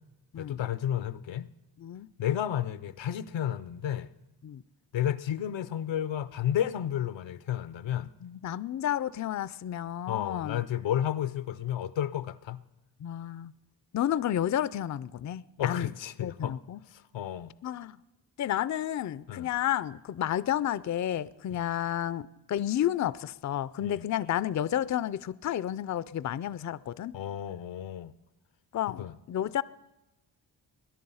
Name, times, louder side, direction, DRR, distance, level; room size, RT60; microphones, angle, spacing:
voice 1, 0.4-1.5 2.2-4.1 4.9-8.1 10.1-12.6 15.6-16.6 16.9-17.5 19.3-19.5 21.5-21.7 23.8-24.1 27.1-28.1 29.0-29.1, left 10 dB, 80° left, 0.7 m, -32 dB
voice 2, 1.8-2.1 4.4-4.6 8.2-10.6 13.0-13.5 13.9-15.9 16.2-16.8 17.6-18.0 18.4-27.1 28.7-29.6, left 11 dB, 40° left, 0.5 m, -31 dB
21.0 x 10.0 x 5.6 m
cardioid pair, 60°, 44 cm